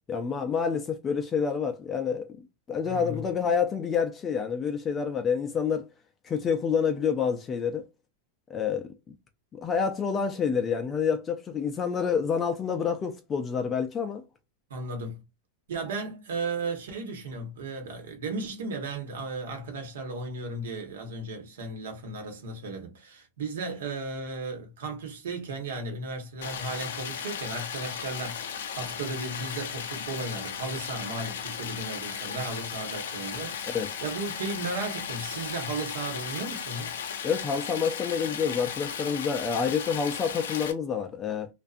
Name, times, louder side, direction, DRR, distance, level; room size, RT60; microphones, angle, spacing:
voice 1, 0.1-5.9 6.2-7.8 8.5-9.1 9.5-14.2 33.7-33.9 37.2-41.5, left 6 dB, 20° left, 0.4 m, -28 dB
voice 2, 2.8-3.2 14.7-15.2 15.7-28.5 28.7-33.6 34.0-37.0, right 3 dB, 80° right, 1.1 m, -35 dB
Stream, 26.4-40.7, left 7 dB, 80° left, 0.5 m, -36 dB
2.5 x 2.2 x 2.5 m
hypercardioid pair, 135°, 0 cm